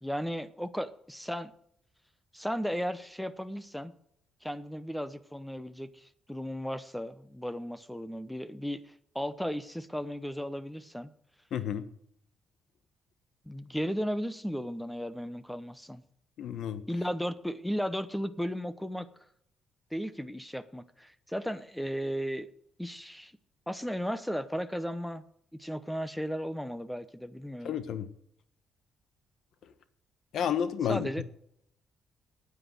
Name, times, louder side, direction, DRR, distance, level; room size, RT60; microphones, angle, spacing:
voice 1, 0.0-1.5 2.3-3.9 4.4-8.8 9.1-11.1 13.5-16.0 16.9-19.1 19.9-22.5 22.8-23.3 23.7-25.2 25.6-27.7 30.8-31.2, equal, 5° left, 14 dB, 0.9 m, -35 dB
voice 2, 11.5-11.8 16.4-16.8 27.6-28.1 30.3-31.2, left 9 dB, 70° left, 13 dB, 1.1 m, -31 dB
9.7 x 8.3 x 8.0 m, 0.71 s
cardioid pair, 90°, 0 cm